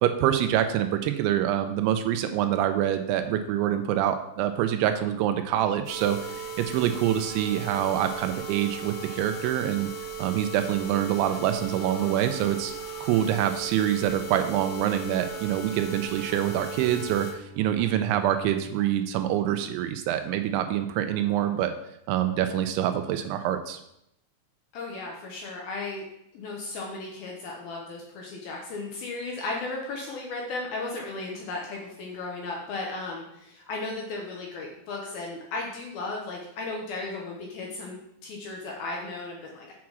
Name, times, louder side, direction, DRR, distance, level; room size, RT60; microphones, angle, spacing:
voice 1, 0.0-9.9 10.2-12.7 13.0-17.3 17.6-21.7 22.1-23.8, right 11 dB, 85° right, 8 dB, 2.9 m, -26 dB
sound 1, 5.8-17.3 17.8-17.9 18.3-18.4 18.8-18.9, right 5 dB, 45° left, 0.5 m, -37 dB
Bowed string instrument, 15.4-19.0, left 3 dB, 65° right, 2.9 m, -47 dB
voice 2, 24.7-26.1 26.3-39.7, left 3 dB, 70° left, -1 dB, 2.4 m, -35 dB
7.3 x 6.0 x 6.1 m, 0.79 s
omnidirectional pair, 5.5 m